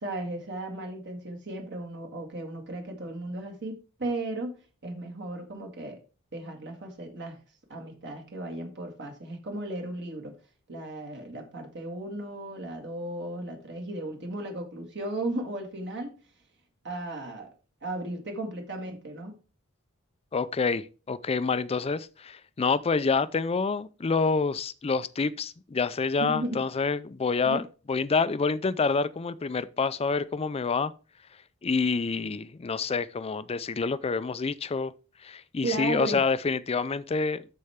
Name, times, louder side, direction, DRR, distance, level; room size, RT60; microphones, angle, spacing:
voice 1, 0.0-4.6 4.8-6.0 6.3-7.4 7.7-10.4 10.7-16.1 16.8-17.5 17.8-19.3 26.2-26.6 27.4-27.6 35.6-36.2, right 2 dB, 55° right, 2.0 m, -35 dB
voice 2, 20.3-27.6 27.9-30.9 31.6-34.9 35.2-37.4, left 4 dB, 30° left, 0.4 m, -27 dB
13.0 x 4.4 x 3.5 m
head